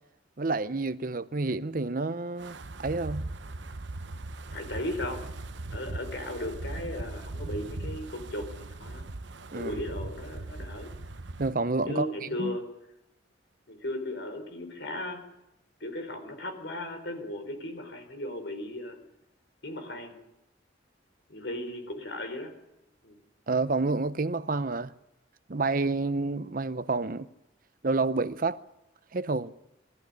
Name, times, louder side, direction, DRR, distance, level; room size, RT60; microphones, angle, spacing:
voice 1, 0.4-3.3 9.5-9.8 11.4-12.6 23.5-24.9 25.5-27.3 27.8-28.6 29.1-29.5, right 3 dB, 45° right, 0.7 m, -29 dB
Wind, 2.4-11.5, right 2 dB, 75° right, 1.0 m, -39 dB
voice 2, 4.5-5.2 5.7-9.0 9.5-10.9 11.9-12.7 13.7-15.2 15.8-19.0 19.6-20.2 21.3-22.5 23.0-23.2, left 1 dB, 70° left, 4.7 m, -36 dB
21.5 x 14.5 x 10.0 m
head